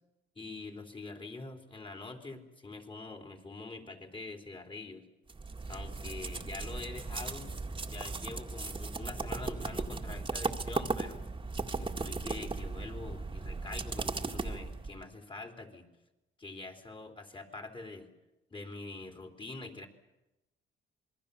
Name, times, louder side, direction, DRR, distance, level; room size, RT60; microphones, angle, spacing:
voice 1, 0.4-5.1 5.7-7.5 7.9-11.2 11.8-15.9 16.4-18.1 18.5-19.9, left 3 dB, 25° left, 4 dB, 3.8 m, -45 dB
sound 1, 5.3-15.0, right 3 dB, 25° right, 1.9 m, -37 dB
27.0 x 22.0 x 7.0 m, 0.96 s
cardioid pair, 90°, 20 cm